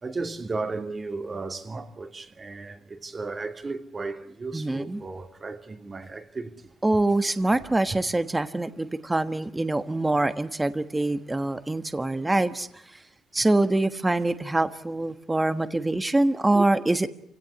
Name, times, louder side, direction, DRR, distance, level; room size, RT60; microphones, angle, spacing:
voice 1, 0.0-6.7 13.4-13.5 16.5-16.7, right 3 dB, 30° right, 2.5 m, -35 dB
voice 2, 4.5-5.0 6.8-12.7 13.3-17.1, right 2 dB, 15° right, 1.3 m, -24 dB
28.0 x 17.0 x 9.8 m
cardioid pair, 90°, 0 cm